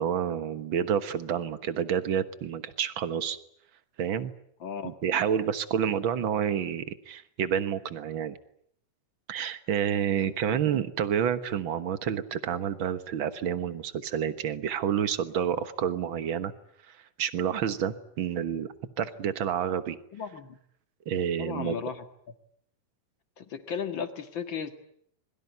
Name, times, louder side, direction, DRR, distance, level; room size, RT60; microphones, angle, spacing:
voice 1, 0.0-3.4 4.0-4.3 4.8-8.4 9.3-16.5 16.9-18.7 19.0-20.0 21.0-21.8, right 8 dB, 55° right, 12 dB, 1.5 m, -29 dB
voice 2, 4.6-4.9 10.2-10.6 20.1-20.6 21.4-22.0 23.4-24.7, left 6 dB, 45° left, 8 dB, 2.1 m, -35 dB
26.0 x 22.5 x 9.4 m, 0.68 s
omnidirectional pair, 3.8 m